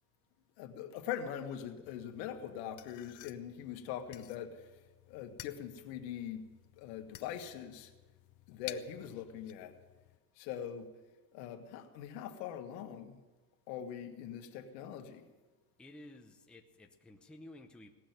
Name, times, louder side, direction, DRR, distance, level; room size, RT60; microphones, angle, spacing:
voice 1, 0.6-4.7 5.1-6.5 6.8-7.9 8.5-9.7 10.4-10.9 11.3-13.2 13.7-15.2, left 9 dB, 80° left, 5 dB, 1.8 m, -42 dB
sound 1, 1.8-10.2, left 16 dB, 40° left, 0.5 m, -54 dB
voice 2, 15.8-17.9, left 1 dB, ahead, 2 dB, 0.7 m, -53 dB
18.0 x 6.4 x 9.0 m, 1.2 s
cardioid pair, 150°, 50 cm